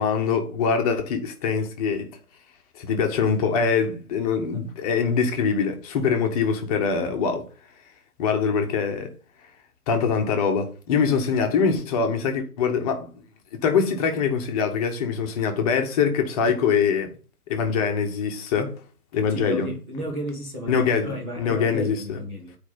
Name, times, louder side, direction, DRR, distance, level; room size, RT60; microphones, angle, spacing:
voice 1, 0.0-2.1 2.8-7.5 8.2-9.1 9.9-13.1 13.5-17.1 17.5-18.7 19.1-19.7 20.7-22.2, left 6 dB, 25° left, 1.4 m, -23 dB
voice 2, 19.3-22.6, equal, 10° right, 0.6 m, -33 dB
9.0 x 4.9 x 5.5 m
figure-of-eight pair, 125°, 46 cm